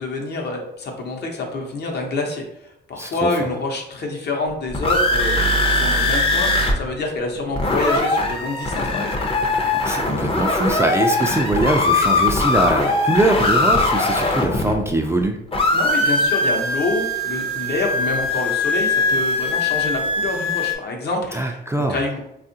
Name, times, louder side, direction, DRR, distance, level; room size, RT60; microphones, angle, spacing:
voice 1, 0.0-5.4 5.7-9.2 15.7-22.2, left 2 dB, 55° left, 1 dB, 0.8 m, -27 dB
voice 2, 3.0-3.3 9.7-15.4 21.3-22.0, right 1 dB, 15° right, 2 dB, 0.3 m, -22 dB
sound 1, 4.5-6.7 7.0-7.1 7.4-15.2 15.5-20.8, left 2 dB, 25° left, 0.6 m, -20 dB
3.5 x 2.4 x 2.7 m, 0.82 s
cardioid pair, 90°, 20 cm